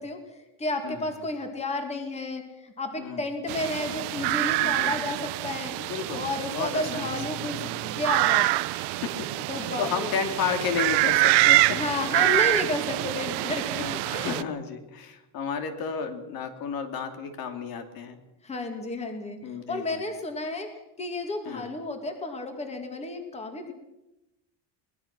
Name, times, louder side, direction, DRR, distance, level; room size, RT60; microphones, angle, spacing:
voice 1, 0.0-5.7 6.1-8.5 9.5-10.1 11.7-13.9 14.1-14.4 18.4-19.4 19.7-20.7 21.0-23.7, left 2 dB, 15° left, 5 dB, 2.4 m, -32 dB
voice 2, 0.8-1.3 3.0-3.3 4.6-5.1 5.8-7.2 8.7-11.8 12.1-12.3 13.8-18.2 19.4-20.0 21.4-21.7, left 6 dB, 55° left, 6 dB, 2.8 m, -33 dB
sound 1, 3.5-14.4, right 19 dB, 70° right, 0.9 m, -26 dB
23.5 x 20.0 x 6.1 m, 0.93 s
cardioid pair, 170°, 43 cm